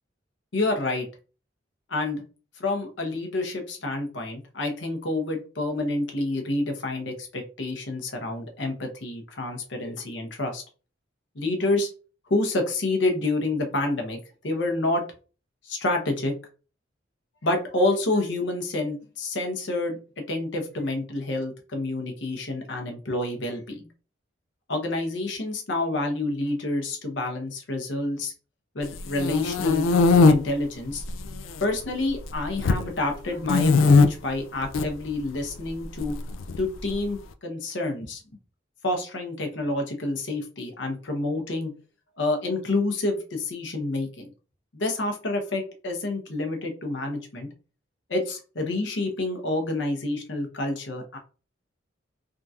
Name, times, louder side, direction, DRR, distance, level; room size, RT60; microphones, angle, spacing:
voice 1, 0.5-1.1 1.9-2.2 2.6-10.6 11.3-11.9 12.3-14.2 14.4-15.0 15.6-16.3 17.4-20.0 20.3-23.9 24.7-28.3 28.7-29.8 30.3-31.0 31.6-36.2 36.6-38.2 38.8-41.7 42.2-44.3 44.7-47.5 48.1-51.2, left 2 dB, 65° left, 3 dB, 0.8 m, -28 dB
sound 1, 28.9-30.3 31.0-31.6 31.9-32.8 33.5-34.1 34.6-34.9 36.0-36.9, left 4 dB, 90° left, 0.4 m, -19 dB
3.6 x 2.7 x 2.4 m, 0.36 s
head